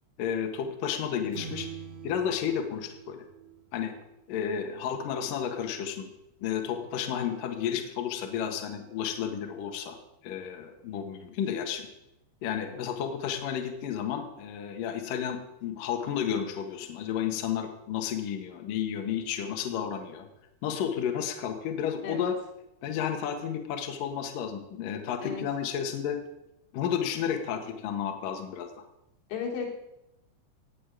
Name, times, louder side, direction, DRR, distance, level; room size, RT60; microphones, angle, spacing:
voice 1, 0.2-1.7 2.0-3.2 3.7-3.9 4.3-6.1 6.4-10.0 10.2-11.9 12.4-20.3 20.6-22.3 22.8-26.2 26.7-28.7, left 8 dB, 60° left, 4 dB, 2.8 m, -32 dB
sound 1, 1.3-4.0, right 7 dB, 45° right, 1.9 m, -43 dB
voice 2, 29.3-29.7, left 5 dB, 90° left, -1 dB, 5.5 m, -34 dB
16.5 x 6.8 x 9.2 m, 0.86 s
omnidirectional pair, 5.1 m